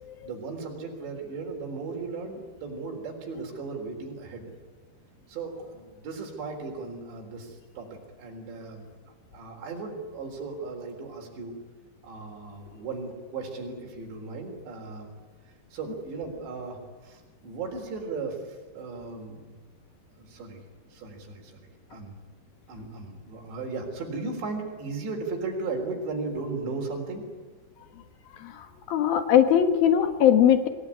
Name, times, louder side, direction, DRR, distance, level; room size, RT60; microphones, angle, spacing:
voice 1, 0.2-4.5 5.3-8.8 9.3-11.5 12.0-15.1 15.7-19.6 20.2-20.6 20.9-21.6 21.9-22.2 22.7-27.2, right 3 dB, 90° right, 1 dB, 6.1 m, -36 dB
voice 2, 28.3-30.7, left 9 dB, 65° left, 8 dB, 2.9 m, -21 dB
26.5 x 19.0 x 9.8 m, 1.4 s
omnidirectional pair, 4.9 m